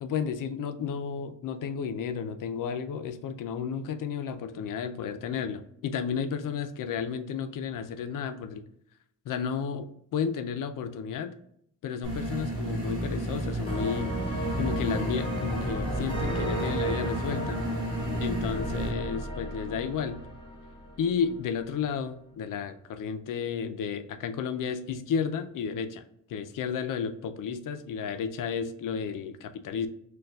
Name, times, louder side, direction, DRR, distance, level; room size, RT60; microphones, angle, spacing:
voice 1, 0.0-8.6 9.3-11.3 11.8-14.1 14.6-17.6 18.2-20.2 21.0-26.0 26.3-29.9, left 7 dB, 70° left, 8 dB, 0.5 m, -32 dB
sound 1, 12.0-18.9, right 1 dB, 45° right, 1.4 m, -32 dB
sound 2, 13.7-21.3, right 1 dB, 15° left, 0.7 m, -34 dB
6.4 x 2.3 x 2.3 m, 0.72 s
wide cardioid pair, 145°, 33 cm